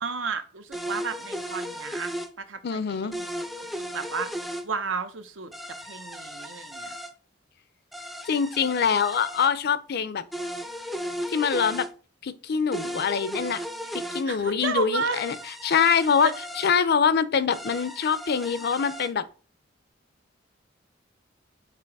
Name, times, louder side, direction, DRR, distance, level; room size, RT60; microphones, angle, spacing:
voice 1, 0.0-3.3 3.6-4.3 4.6-5.5 5.8-7.0 14.3-15.2, right 4 dB, 85° right, 0.9 m, -32 dB
sound 1, 0.7-2.3 3.1-4.7 5.5-7.1 7.9-9.5 10.3-11.9 12.7-14.2 15.1-16.7 17.5-19.1, equal, ahead, 0.4 m, -36 dB
voice 2, 2.6-3.2 8.3-10.2 11.3-11.8 12.2-13.6 13.9-15.3 15.6-16.3 16.6-19.2, left 6 dB, 55° left, 0.5 m, -24 dB
6.8 x 2.9 x 4.7 m
head